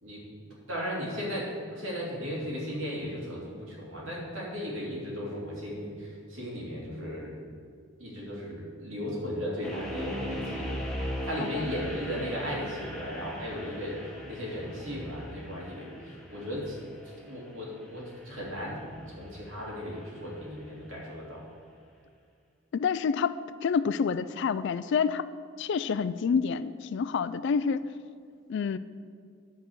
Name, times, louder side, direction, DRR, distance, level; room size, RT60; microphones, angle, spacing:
voice 1, 0.0-0.4 0.7-7.4 8.0-16.8 17.0-18.8 19.1-21.5, equal, 70° right, -4 dB, 2.8 m, -36 dB
sound 1, 9.6-20.7, equal, 5° left, 1.2 m, -40 dB
voice 2, 22.7-25.3 25.6-27.9 28.5-28.8, left 6 dB, 60° left, 15 dB, 0.3 m, -28 dB
10.5 x 4.1 x 7.7 m, 2.1 s
head